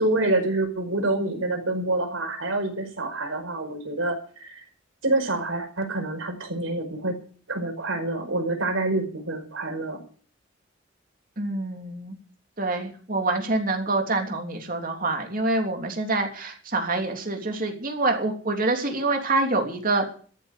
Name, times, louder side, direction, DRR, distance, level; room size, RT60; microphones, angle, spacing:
voice 1, 0.0-4.6 5.0-7.2 7.5-10.0, right 2 dB, 90° right, 4 dB, 5.1 m, -27 dB
voice 2, 11.4-12.1 12.6-20.1, right 2 dB, 45° right, 4 dB, 3.1 m, -26 dB
14.0 x 8.6 x 9.1 m, 0.43 s
head